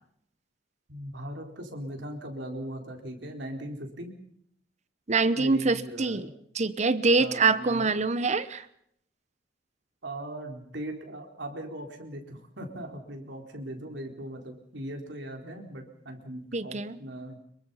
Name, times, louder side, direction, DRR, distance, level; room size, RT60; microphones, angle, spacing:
voice 1, 0.9-4.1 5.4-6.3 7.2-7.9 10.0-17.4, right 1 dB, 70° right, 3 dB, 4.3 m, -39 dB
voice 2, 5.1-6.3 6.5-8.7 16.5-17.0, right 3 dB, 40° right, 14 dB, 0.9 m, -25 dB
26.0 x 23.0 x 5.7 m, 0.69 s
head